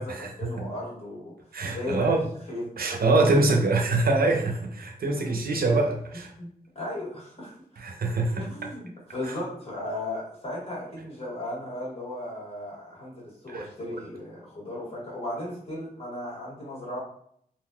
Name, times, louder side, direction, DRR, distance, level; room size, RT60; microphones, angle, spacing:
voice 1, 0.0-1.3 1.6-2.2 2.5-2.6 4.2-4.5 5.2-5.3 6.4-6.5 6.7-7.6 8.4-17.0, left 1 dB, 40° left, -6 dB, 1.4 m, -36 dB
voice 2, 1.5-2.2 2.8-6.3 7.8-8.5 9.3-9.4 13.5-13.7, right 2 dB, 75° right, 2 dB, 0.6 m, -24 dB
3.6 x 2.5 x 2.3 m, 0.66 s
wide cardioid pair, 125°, 16 cm